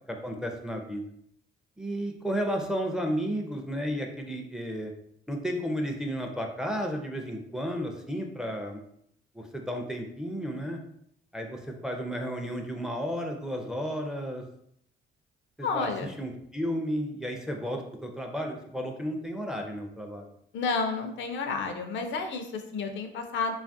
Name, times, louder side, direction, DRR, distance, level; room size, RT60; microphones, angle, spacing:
voice 1, 0.1-1.0 1.8-4.9 5.3-8.8 9.3-10.8 11.3-14.4 15.6-20.3, equal, 5° right, 2 dB, 0.4 m, -33 dB
voice 2, 15.6-16.1 20.5-23.6, left 4 dB, 70° left, 6 dB, 0.5 m, -31 dB
2.8 x 2.4 x 2.5 m, 0.71 s
cardioid pair, 90°, 20 cm